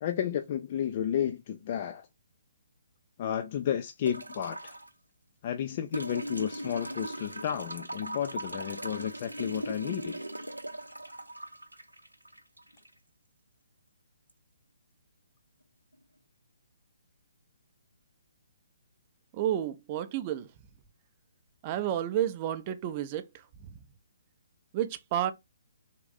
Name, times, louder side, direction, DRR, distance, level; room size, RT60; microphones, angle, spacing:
voice 1, 0.0-2.1 3.2-4.8 5.4-10.2, left 9 dB, 40° left, 0.3 m, -32 dB
sound 1, 4.1-4.9 5.9-12.9 14.3-14.4, right 1 dB, 85° right, 0.5 m, -39 dB
voice 2, 19.3-20.5 21.6-23.8 24.7-25.3, right 11 dB, 30° right, 0.4 m, -31 dB
3.6 x 2.5 x 3.8 m
figure-of-eight pair, 130°, 0 cm